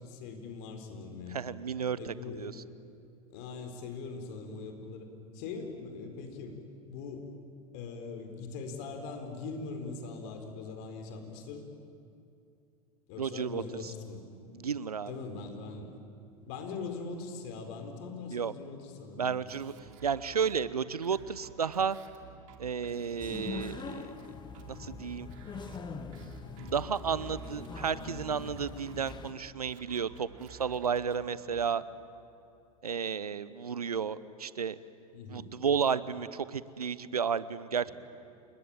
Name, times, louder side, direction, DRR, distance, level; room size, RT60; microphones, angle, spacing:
voice 1, 0.0-1.4 2.0-2.5 3.3-5.1 5.3-7.3 7.7-11.6 13.1-14.2 15.1-16.0 16.4-19.5 35.1-35.5, left 4 dB, 55° left, 5 dB, 4.4 m, -41 dB
voice 2, 1.3-2.6 13.2-13.9 14.5-15.2 18.3-18.5 19.2-19.7 20.0-22.0 22.6-24.1 24.7-25.3 26.6-31.8 32.8-34.8 35.3-37.9, right 6 dB, 85° right, 17 dB, 0.8 m, -32 dB
sound 1, 19.5-31.8, right 7 dB, 60° right, 2.9 m, -53 dB
sound 2, 23.2-29.3, left 5 dB, 25° left, 1.8 m, -43 dB
29.0 x 20.0 x 9.0 m, 2.5 s
figure-of-eight pair, 85°, 19 cm